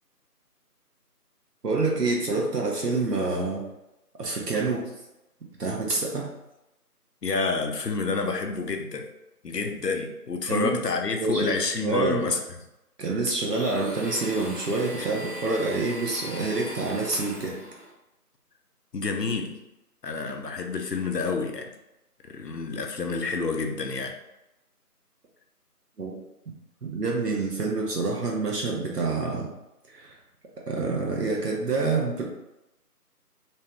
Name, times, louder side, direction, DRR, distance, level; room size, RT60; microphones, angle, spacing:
voice 1, 1.6-3.6 4.2-4.9 5.6-6.3 10.5-10.8 11.2-12.3 13.0-17.6 26.0-26.2 26.8-29.5 29.9-30.2 30.7-32.3, right 3 dB, 75° right, -2 dB, 0.9 m, -27 dB
voice 2, 7.2-9.1 9.4-12.4 15.0-15.1 18.9-19.6 20.0-21.7 22.2-24.1, left 4 dB, 85° left, 4 dB, 0.7 m, -28 dB
Domestic sounds home sounds, 13.5-17.9, right 1 dB, 40° right, 1.5 m, -39 dB
3.1 x 3.0 x 2.3 m, 0.93 s
figure-of-eight pair, 170°, 48 cm